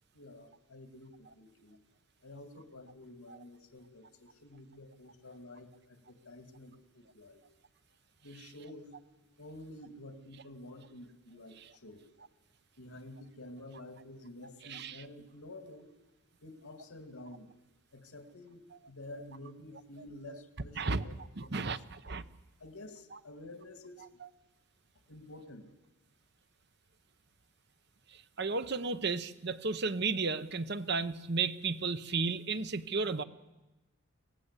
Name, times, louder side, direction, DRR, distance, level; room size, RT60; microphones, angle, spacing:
voice 1, 0.1-1.8 2.2-7.4 8.2-9.0 9.4-12.1 12.8-15.9 16.4-17.5 17.9-21.1 21.4-21.7 22.6-24.1 25.1-25.7, left 1 dB, 85° left, 7 dB, 2.4 m, -50 dB
voice 2, 14.7-15.0 20.8-21.0 21.4-22.2 28.1-33.2, right 4 dB, 50° right, 12 dB, 0.9 m, -33 dB
25.0 x 18.0 x 8.3 m, 1.1 s
head